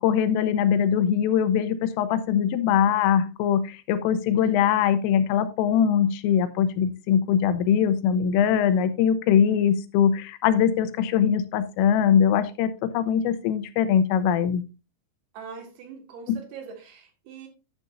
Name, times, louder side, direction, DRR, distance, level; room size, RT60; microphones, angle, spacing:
voice 1, 0.0-14.6 16.3-16.4, left 8 dB, 85° left, 3.3 m, -22 dB
voice 2, 4.4-4.7 15.3-17.5, right 6 dB, 60° right, 3.3 m, -42 dB
11.0 x 8.5 x 2.6 m
omnidirectional pair, 5.8 m